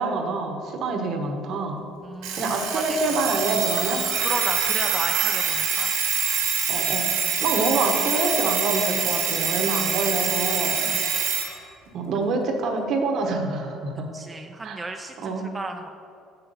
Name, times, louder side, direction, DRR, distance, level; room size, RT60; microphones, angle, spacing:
voice 1, 0.0-1.8 2.3-4.0 6.7-10.8 11.9-14.1 14.6-14.8 15.2-15.5, right 3 dB, 60° right, 4 dB, 1.1 m, -26 dB
voice 2, 2.0-3.3 4.2-6.0 10.8-11.1 12.1-12.3 14.1-15.9, right 3 dB, 20° right, 4 dB, 0.4 m, -34 dB
Alarm, 2.2-11.5, right 7 dB, 80° right, 1.6 m, -25 dB
6.7 x 5.7 x 5.5 m, 2.4 s
supercardioid pair, 85°, 0 cm